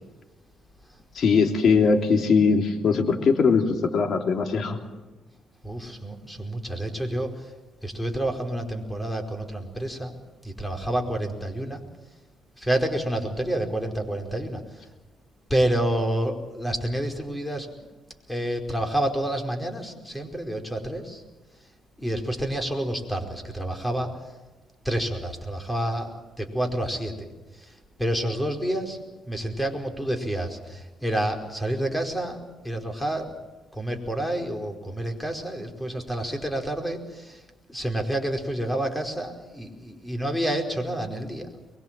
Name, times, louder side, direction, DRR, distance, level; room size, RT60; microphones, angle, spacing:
voice 1, 1.1-4.8, left 5 dB, 60° left, 3 dB, 3.4 m, -21 dB
voice 2, 5.6-7.5 7.8-10.2 10.4-11.8 12.6-14.8 15.5-17.7 18.3-21.2 22.0-24.2 24.8-27.3 27.5-32.4 32.6-33.3 33.7-37.4 37.7-41.5, right 1 dB, 5° left, 4 dB, 4.9 m, -29 dB
24.0 x 22.0 x 7.7 m, 1.2 s
cardioid pair, 90°, 0 cm